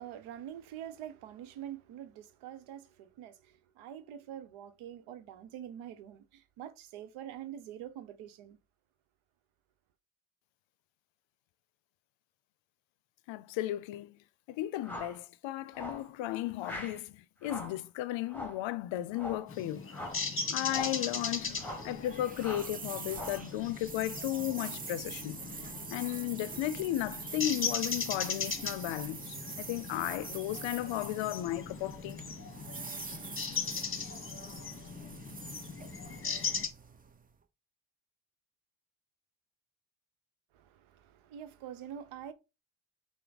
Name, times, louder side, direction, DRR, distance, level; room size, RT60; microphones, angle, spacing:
voice 1, 0.0-8.6 40.5-42.3, right 10 dB, 85° right, 0.7 m, -45 dB
voice 2, 13.3-14.2 14.5-19.8 20.5-21.6 21.8-25.4 25.9-32.2, left 14 dB, 70° left, 0.5 m, -35 dB
sound 1, 14.8-15.2 15.7-16.1 16.6-17.0 17.4-17.8 18.3-18.7 19.1-19.5 19.9-20.3 20.7-21.0 21.6-21.9 22.4-22.7 23.1-23.5, left 1 dB, 5° left, 1.3 m, -42 dB
sound 2, 19.5-36.7, left 5 dB, 25° left, 1.0 m, -39 dB
sound 3, 21.1-37.3, right 5 dB, 20° right, 0.4 m, -45 dB
5.7 x 2.1 x 3.9 m
cardioid pair, 80°, 48 cm